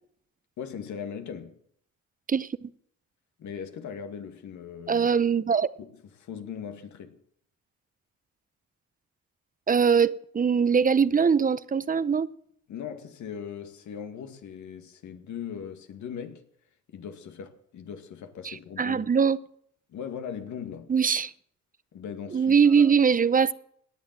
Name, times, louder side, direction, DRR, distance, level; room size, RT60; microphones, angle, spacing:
voice 1, 0.6-1.6 3.4-5.1 5.8-7.2 12.7-16.4 16.9-19.1 19.9-20.9 21.9-22.9, left 7 dB, 70° left, 2.3 m, -39 dB
voice 2, 2.3-2.7 4.9-5.7 9.7-12.3 18.4-19.4 20.9-21.3 22.3-23.5, right 6 dB, 30° right, 0.8 m, -22 dB
18.0 x 10.5 x 7.6 m
cardioid pair, 90°, 30 cm